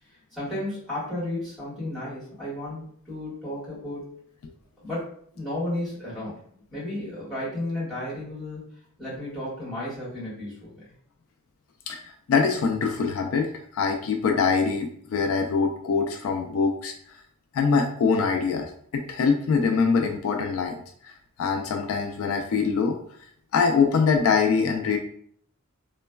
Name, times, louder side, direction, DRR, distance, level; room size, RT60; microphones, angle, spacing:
voice 1, 0.1-4.2 4.8-8.6 9.0-10.9, left 1 dB, ahead, -9 dB, 1.5 m, -33 dB
voice 2, 11.9-16.9 17.5-23.0 23.5-25.0, left 5 dB, 65° left, 4 dB, 0.3 m, -24 dB
3.1 x 2.2 x 2.2 m, 0.62 s
head